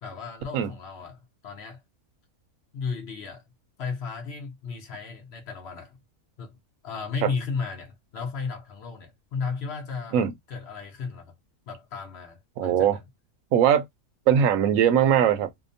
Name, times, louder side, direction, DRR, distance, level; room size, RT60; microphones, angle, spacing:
voice 1, 0.0-1.8 2.7-3.4 3.8-6.0 6.4-6.5 6.8-10.2 10.5-11.3 11.7-13.0, left 5 dB, 55° left, 0.8 m, -34 dB
voice 2, 12.6-13.0 13.5-13.9 14.3-15.5, right 9 dB, 70° right, 1.0 m, -20 dB
2.8 x 2.0 x 2.5 m
omnidirectional pair, 1.5 m